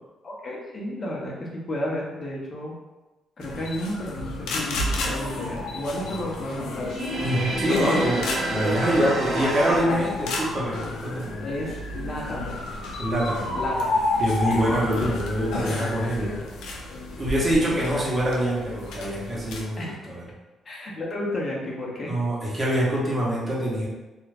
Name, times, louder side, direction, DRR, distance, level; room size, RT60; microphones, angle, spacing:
voice 1, 0.2-2.7 3.4-7.0 7.8-8.6 11.4-12.6 13.6-13.9 14.5-14.6 16.0-16.4 17.6-18.1 19.8-19.9 20.6-22.1, left 1 dB, 40° left, -3 dB, 0.7 m, -32 dB
sound 1, 3.4-19.6, left 2 dB, 85° left, 0.5 m, -31 dB
sound 2, 6.8-9.8, right 1 dB, 55° right, 0.7 m, -28 dB
voice 2, 7.2-8.2 8.5-11.4 13.0-13.5 14.2-16.3 17.2-20.2 22.1-23.9, right 1 dB, 25° right, -6 dB, 1.0 m, -25 dB
2.4 x 2.2 x 3.3 m, 1.1 s
cardioid pair, 90°, 0 cm